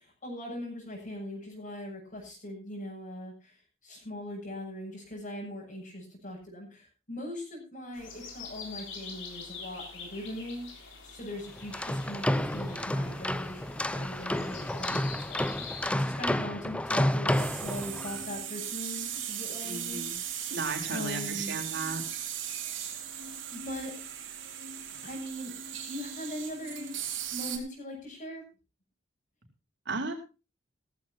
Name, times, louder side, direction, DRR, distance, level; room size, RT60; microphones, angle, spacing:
voice 1, 0.0-20.6 20.9-21.6 23.1-23.9 25.0-25.5 25.8-26.9 27.3-28.4, equal, 45° left, -4 dB, 7.2 m, -41 dB
sound 1, 7.9-15.9, left 5 dB, 80° left, 6.3 m, -45 dB
sound 2, 11.6-18.3, left 1 dB, 5° left, 0.6 m, -30 dB
sound 3, 17.3-27.6, right 9 dB, 85° right, 3.9 m, -38 dB
voice 2, 19.6-20.2 20.5-22.0 29.9-30.1, right 3 dB, 65° right, 4 dB, 3.8 m, -35 dB
16.5 x 15.0 x 2.8 m, 0.31 s
head